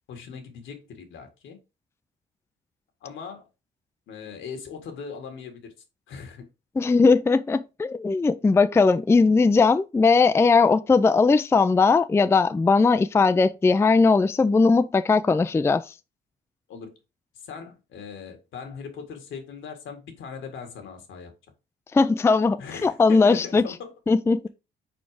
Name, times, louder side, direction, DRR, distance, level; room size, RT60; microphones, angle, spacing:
voice 1, 0.1-1.6 3.0-3.4 4.1-5.7 6.1-6.5 16.7-16.9 17.4-21.3 22.6-23.9, left 6 dB, 80° left, 1.7 m, -39 dB
voice 2, 6.8-15.8 21.9-23.6 24.1-24.5, left 4 dB, 15° left, 0.4 m, -19 dB
4.5 x 4.3 x 4.7 m
cardioid pair, 90°, 20 cm